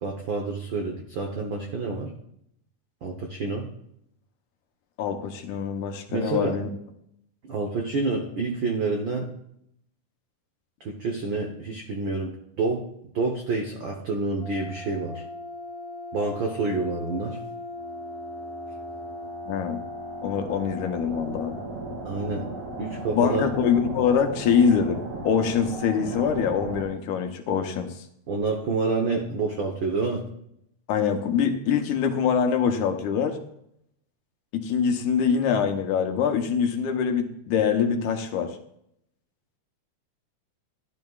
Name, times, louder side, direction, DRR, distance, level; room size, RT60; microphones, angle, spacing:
voice 1, 0.0-2.1 3.0-3.7 6.1-6.6 7.5-9.3 10.8-12.8 13.1-15.2 16.1-17.4 22.0-22.5 22.8-23.5 28.3-30.3, right 3 dB, 85° right, 2 dB, 1.0 m, -28 dB
voice 2, 5.0-6.7 19.5-19.8 20.2-21.6 23.1-27.9 30.9-33.4 34.5-38.5, left 7 dB, 75° left, 5 dB, 2.3 m, -24 dB
sound 1, 14.4-26.8, right 1 dB, 45° right, 3.5 m, -37 dB
14.5 x 11.0 x 2.4 m, 0.74 s
omnidirectional pair, 3.7 m